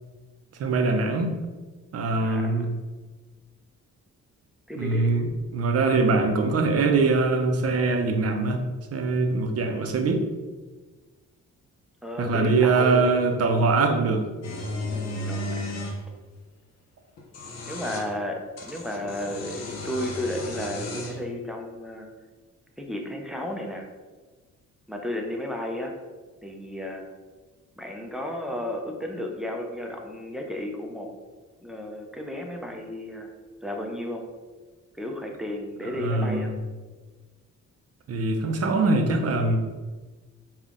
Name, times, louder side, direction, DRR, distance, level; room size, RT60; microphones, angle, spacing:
voice 1, 0.6-1.3 1.9-2.7 4.7-8.6 8.9-10.2 12.2-14.3 35.9-36.6 38.1-39.6, right 3 dB, 55° right, 4 dB, 0.7 m, -23 dB
voice 2, 2.2-2.6 4.7-5.2 12.0-13.1 14.9-15.8 17.6-22.1 22.8-23.9 24.9-25.9 26.4-27.1 27.8-31.1 31.6-33.3 33.6-34.3 34.9-36.5, left 1 dB, ahead, 1 dB, 0.6 m, -33 dB
sound 1, 14.4-16.0 17.2-18.1 18.6-21.2, left 1 dB, 60° left, 0.8 m, -34 dB
5.6 x 2.4 x 3.7 m, 1.3 s
cardioid pair, 105°, 30 cm